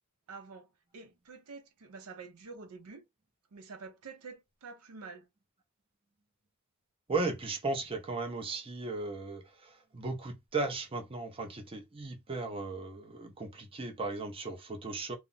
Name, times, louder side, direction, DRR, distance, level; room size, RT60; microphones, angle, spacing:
voice 1, 0.3-3.0 3.5-5.3, right 4 dB, 85° right, 0.6 m, -48 dB
voice 2, 7.1-15.2, right 3 dB, 25° right, 0.5 m, -36 dB
2.3 x 2.0 x 3.8 m
head